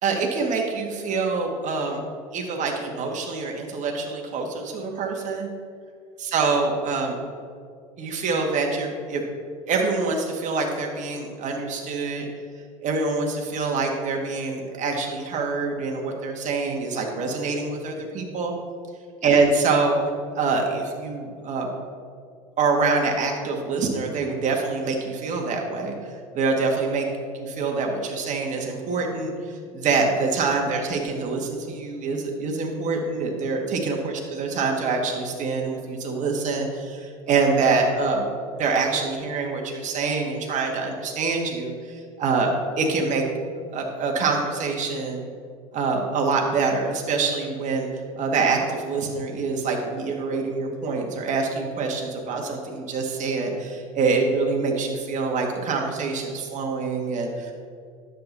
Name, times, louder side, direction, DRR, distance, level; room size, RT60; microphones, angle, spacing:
voice 1, 0.0-2.0 2.3-5.5 6.2-7.2 8.0-9.2 9.7-12.3 12.8-18.5 19.2-20.0 20.4-21.7 22.6-27.1 27.3-38.3 38.6-43.2 43.7-45.2 45.7-47.9 48.2-57.5, right 4 dB, 40° right, 1 dB, 1.9 m, -25 dB
10.5 x 7.9 x 4.1 m, 2.2 s
hypercardioid pair, 80°, 18 cm